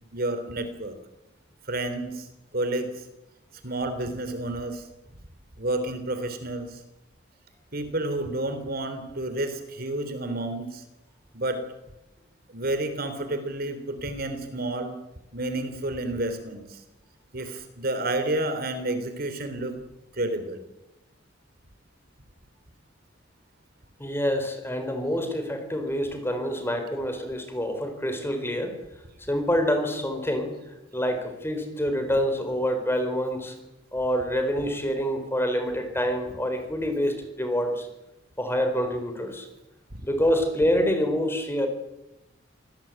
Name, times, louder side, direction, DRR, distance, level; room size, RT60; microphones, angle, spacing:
voice 1, 0.1-0.9 1.7-2.3 2.5-2.9 3.6-4.8 5.6-6.8 7.7-10.8 11.3-11.6 12.5-15.0 15.3-16.8 17.3-19.7 20.1-20.6 39.9-40.0, right 2 dB, 50° right, 9 dB, 3.6 m, -30 dB
voice 2, 24.0-28.8 29.3-30.5 30.9-33.6 33.9-37.9 38.4-39.5 40.0-41.7, equal, 10° left, 6 dB, 4.1 m, -26 dB
26.0 x 18.5 x 9.1 m, 0.97 s
head